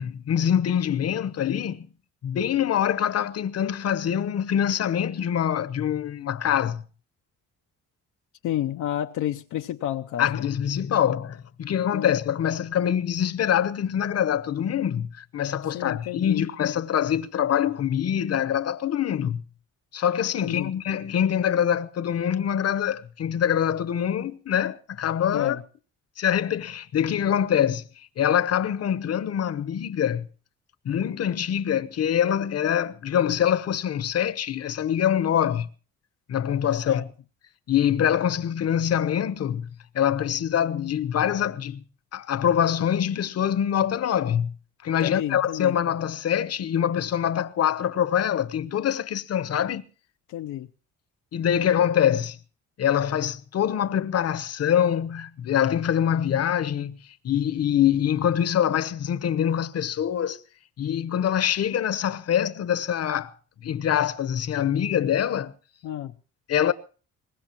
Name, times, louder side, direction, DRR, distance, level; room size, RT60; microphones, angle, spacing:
voice 1, 0.0-1.9 2.2-6.8 10.2-19.4 19.9-25.6 26.2-27.8 28.2-30.3 30.8-35.7 36.3-37.1 37.7-39.7 39.9-41.8 42.1-44.5 44.8-49.8 51.3-52.4 52.8-57.0 57.2-60.4 60.8-63.3 63.6-65.5 66.5-66.7, left 9 dB, 55° left, 0.9 m, -24 dB
voice 2, 8.4-10.4 11.9-12.2 15.7-16.4 20.4-20.7 25.3-25.6 36.8-37.1 45.0-45.8 50.3-50.7 65.8-66.1, left 12 dB, 75° left, 0.7 m, -30 dB
22.5 x 19.5 x 3.0 m
cardioid pair, 90°, 30 cm